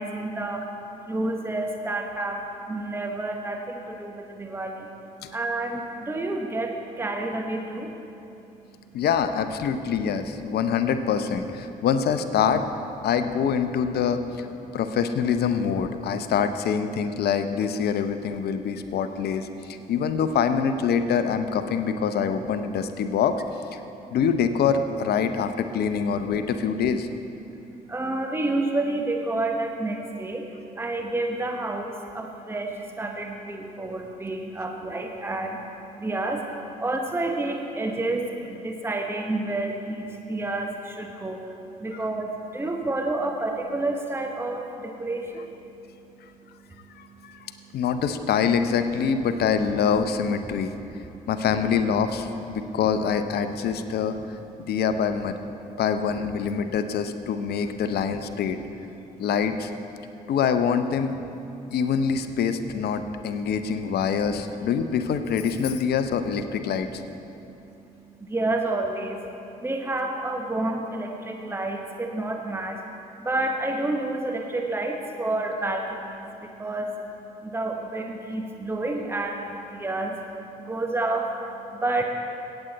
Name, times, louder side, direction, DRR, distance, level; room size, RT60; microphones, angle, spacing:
voice 1, 0.0-9.0 14.6-14.8 19.8-19.9 23.8-24.2 27.4-48.1 50.8-51.3 54.6-54.7 55.6-55.8 56.6-56.7 58.9-59.3 60.0-60.3 61.5-61.7 63.3-63.5 67.3-82.0, right 2 dB, 10° right, 3 dB, 1.1 m, -30 dB
voice 2, 8.9-12.6 13.0-14.5 14.7-23.4 23.7-23.8 24.1-27.1 47.0-47.4 47.7-50.7 51.3-54.2 54.6-55.4 55.8-58.6 59.2-59.7 60.3-61.2 61.7-67.0, left 7 dB, 55° left, 10 dB, 0.7 m, -25 dB
17.5 x 8.0 x 4.0 m, 2.8 s
figure-of-eight pair, 45°, 20 cm